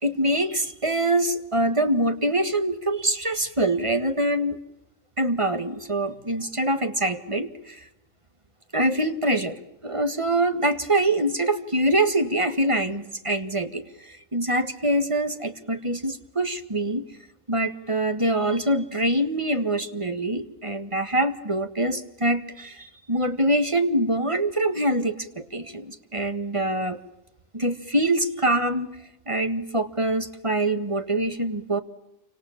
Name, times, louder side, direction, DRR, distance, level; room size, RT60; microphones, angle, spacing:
voice 1, 0.0-4.6 5.2-7.9 8.7-17.1 17.5-27.0 27.5-29.0 29.3-31.8, right 1 dB, 20° right, 8 dB, 1.7 m, -24 dB
28.5 x 26.0 x 7.4 m, 0.87 s
omnidirectional pair, 1.4 m